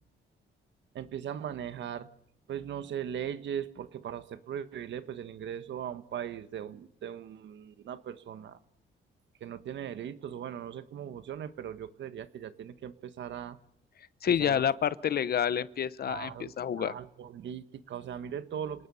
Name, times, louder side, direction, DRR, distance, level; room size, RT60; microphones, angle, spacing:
voice 1, 0.9-2.1 2.5-8.6 9.4-13.6 14.3-14.6 16.1-18.9, right 9 dB, 65° right, 11 dB, 1.5 m, -39 dB
voice 2, 14.2-16.9, left 8 dB, 50° left, 17 dB, 0.8 m, -28 dB
28.5 x 19.0 x 5.6 m, 0.72 s
cardioid pair, 90°, 20 cm